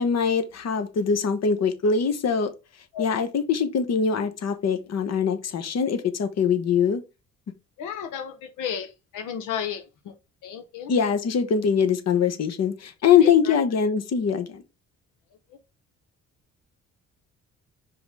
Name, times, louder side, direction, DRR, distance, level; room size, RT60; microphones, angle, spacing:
voice 1, 0.0-2.5 3.0-7.0 10.9-14.6, left 6 dB, 60° left, 1.2 m, -23 dB
voice 2, 7.8-10.1 10.4-10.9 13.2-13.5, left 8 dB, 90° left, 0.9 m, -33 dB
5.0 x 3.9 x 4.9 m
cardioid pair, 90°, 30 cm